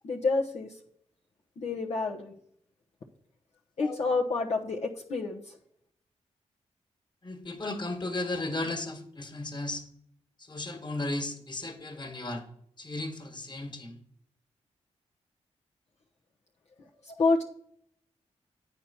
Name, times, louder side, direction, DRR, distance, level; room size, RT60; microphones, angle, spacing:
voice 1, 0.0-0.7 1.6-2.3 3.8-5.5 16.8-17.4, left 3 dB, 70° left, -3 dB, 1.0 m, -29 dB
voice 2, 7.2-9.8 10.4-12.4 12.8-14.0, left 2 dB, 40° left, 6 dB, 1.9 m, -35 dB
9.2 x 4.5 x 7.1 m, 0.68 s
cardioid pair, 60°, 12 cm